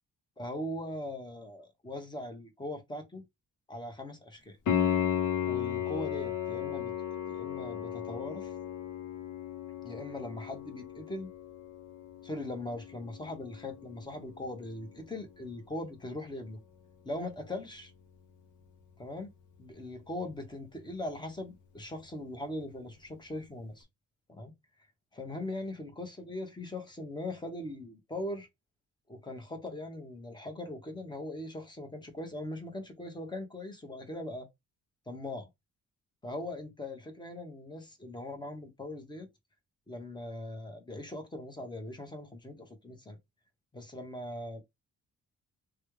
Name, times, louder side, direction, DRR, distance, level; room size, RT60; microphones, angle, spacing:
voice 1, 0.4-3.2 3.7-4.6 5.5-6.9 7.3-8.5 9.8-11.3 12.2-16.6 17.0-17.9 19.0-19.3 19.6-23.9 24.3-24.5 25.1-28.5 29.1-34.5 35.1-35.5 36.2-39.3 39.9-43.2 43.7-44.6, left 1 dB, 15° left, 1.1 m, -40 dB
Piano, 4.7-15.3 18.6-18.7, left 9 dB, 75° left, 1.0 m, -35 dB
3.2 x 2.3 x 3.2 m
cardioid pair, 90°, 30 cm